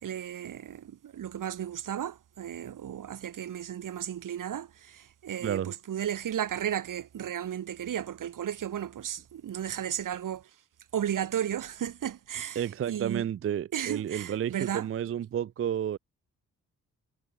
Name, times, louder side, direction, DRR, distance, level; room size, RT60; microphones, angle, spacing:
voice 1, 0.0-10.5 10.9-13.3 13.7-14.9, right 10 dB, 65° right, 1.3 m, -34 dB
voice 2, 12.6-16.0, right 9 dB, 40° right, 0.4 m, -31 dB
supercardioid pair, 50°, 34 cm